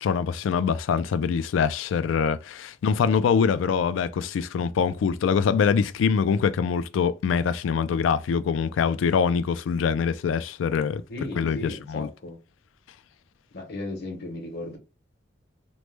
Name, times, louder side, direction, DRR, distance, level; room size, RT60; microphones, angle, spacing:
voice 1, 0.0-11.0 11.4-12.1, left 6 dB, 80° left, 0.3 m, -24 dB
voice 2, 11.1-12.4 13.5-14.8, left 2 dB, 60° left, 1.0 m, -35 dB
3.1 x 2.1 x 3.2 m
head